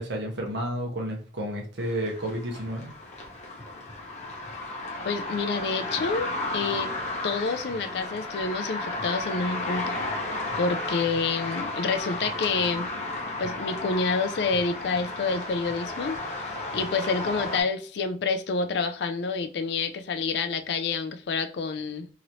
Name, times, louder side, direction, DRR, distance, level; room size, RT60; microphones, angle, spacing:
voice 1, 0.0-2.9, right 1 dB, 70° right, 0.9 m, -31 dB
sound 1, 1.8-17.6, left 2 dB, 35° left, 0.7 m, -33 dB
voice 2, 5.0-6.9 7.2-10.0 10.6-12.9 13.4-22.1, left 4 dB, 65° left, 0.4 m, -28 dB
3.0 x 2.9 x 2.6 m
head